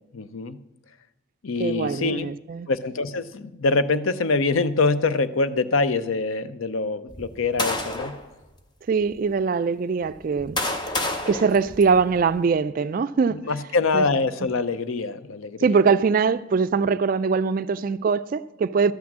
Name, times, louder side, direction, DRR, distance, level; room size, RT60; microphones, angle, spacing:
voice 1, 0.1-0.6 1.4-2.3 2.7-8.1 13.3-15.8, left 3 dB, 85° left, 0.6 m, -24 dB
voice 2, 1.6-2.7 8.9-10.6 11.3-13.4 13.9-14.1 15.6-18.9, right 5 dB, 45° right, 0.3 m, -22 dB
sound 1, 7.1-8.2 9.0-9.1 10.0-12.4, left 2 dB, 20° left, 0.8 m, -30 dB
12.5 x 6.1 x 7.3 m
head